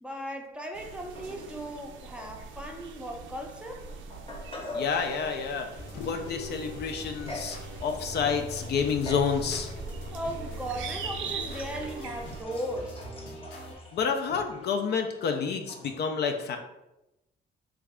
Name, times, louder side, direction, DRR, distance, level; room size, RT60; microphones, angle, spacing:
voice 1, 0.0-3.8 10.1-13.0, right 1 dB, 5° right, 1 dB, 0.5 m, -37 dB
sound 1, 0.7-12.4, right 5 dB, 75° right, 0.4 m, -42 dB
sound 2, 1.1-1.9 2.1-2.3 3.2-3.3 3.9-5.0 7.3-7.6 8.0-8.4 9.1-9.4 10.0-10.1 11.5-16.0, left 2 dB, 25° left, 0.8 m, -43 dB
voice 2, 4.7-9.7 11.4-11.5 13.9-16.6, left 6 dB, 60° left, 5 dB, 0.4 m, -29 dB
sound 3, 5.8-13.8, left 1 dB, 80° left, 0.8 m, -42 dB
3.1 x 2.3 x 3.6 m, 0.94 s
cardioid pair, 90°, 20 cm